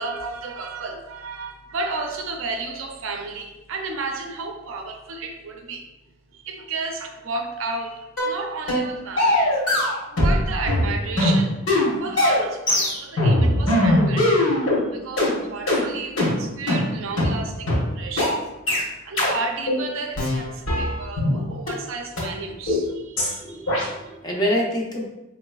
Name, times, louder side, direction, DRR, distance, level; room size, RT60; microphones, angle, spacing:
voice 1, 0.0-5.9 6.3-9.6 10.1-11.6 12.0-14.3 14.9-18.4 19.0-23.9, right 3 dB, 65° right, 4 dB, 0.5 m, -32 dB
sound 1, 8.2-8.3 8.7-8.9 9.2-10.4 10.7-14.8 15.2-15.3 15.7-15.8 16.2-16.3 16.7-16.8 17.2-17.3 17.7-17.8 18.2-18.3 18.7-18.8 19.2-19.3 19.7-19.8 20.2-21.3 21.7-21.8 22.2-22.3 22.7-22.8 23.2-23.3 23.7-23.8, left 1 dB, 65° left, 1.3 m, -20 dB
voice 2, 23.4-25.0, equal, 20° left, -2 dB, 0.5 m, -26 dB
4.8 x 3.1 x 2.3 m, 1.0 s
head